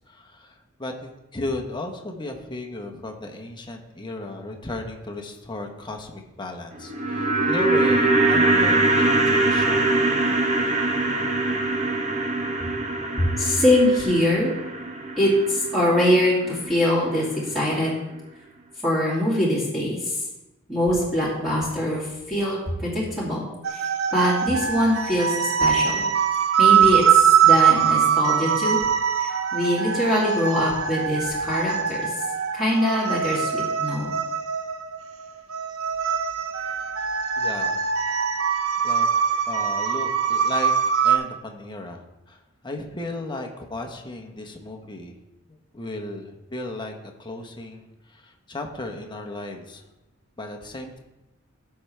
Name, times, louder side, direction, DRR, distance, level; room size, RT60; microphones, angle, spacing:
voice 1, 0.1-9.8 37.4-37.9 38.8-39.1 39.5-40.7 41.0-45.1 45.5-49.8 50.4-51.0, left 2 dB, 20° left, 3 dB, 1.1 m, -35 dB
sound 1, 6.7-17.0 17.3-17.4, right 2 dB, 35° right, 1.0 m, -23 dB
voice 2, 13.2-14.5 15.2-18.0 18.8-20.3 20.7-23.5 23.7-25.3 25.6-26.0 26.6-28.8 29.2-32.1 32.5-34.1, left 1 dB, ahead, -9 dB, 2.6 m, -23 dB
sound 2, 23.6-41.2, right 7 dB, 85° right, 0.8 m, -22 dB
15.0 x 5.8 x 3.3 m, 0.98 s
head